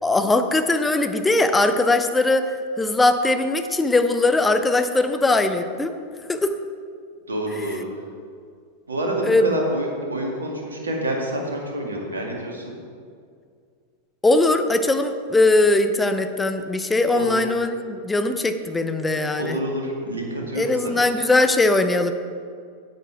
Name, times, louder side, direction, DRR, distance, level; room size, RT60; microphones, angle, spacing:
voice 1, 0.0-5.9 6.3-6.5 7.6-7.8 9.2-9.4 14.2-19.6 20.6-22.1, left 2 dB, 10° left, 8 dB, 0.7 m, -20 dB
voice 2, 7.3-7.9 8.9-12.7 17.1-17.3 19.4-21.0, right 1 dB, 75° right, -1 dB, 2.2 m, -27 dB
9.1 x 8.9 x 4.9 m, 2.2 s
figure-of-eight pair, 90°, 0 cm